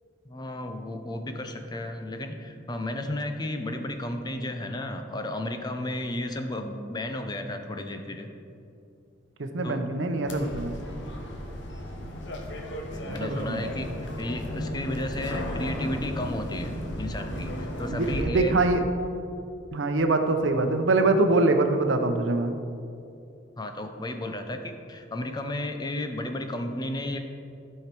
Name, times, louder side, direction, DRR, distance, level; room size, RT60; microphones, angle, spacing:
voice 1, 0.3-8.3 9.6-9.8 12.9-18.6 23.6-27.2, left 1 dB, 20° left, 6 dB, 0.6 m, -33 dB
voice 2, 9.4-10.7 13.1-13.7 17.9-18.9 19.7-22.5, right 2 dB, 80° right, 6 dB, 0.8 m, -24 dB
sound 1, 10.3-18.2, left 1 dB, 70° left, 1.1 m, -35 dB
12.5 x 5.7 x 4.5 m, 2.6 s
head